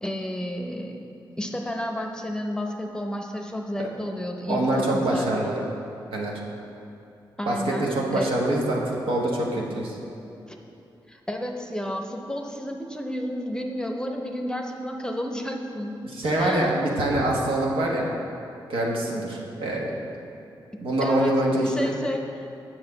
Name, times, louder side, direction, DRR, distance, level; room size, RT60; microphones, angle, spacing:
voice 1, 0.0-1.0 1.4-5.6 7.4-8.3 10.5-10.6 11.1-16.0 16.3-16.8 21.0-22.4, equal, 10° left, 3 dB, 0.7 m, -31 dB
voice 2, 4.5-5.6 6.1-6.3 7.5-10.0 16.1-18.1 18.7-19.9 20.2-20.3 20.8-21.9, right 1 dB, 85° right, -2 dB, 1.1 m, -25 dB
8.0 x 6.1 x 3.9 m, 2.8 s
cardioid pair, 70°, 9 cm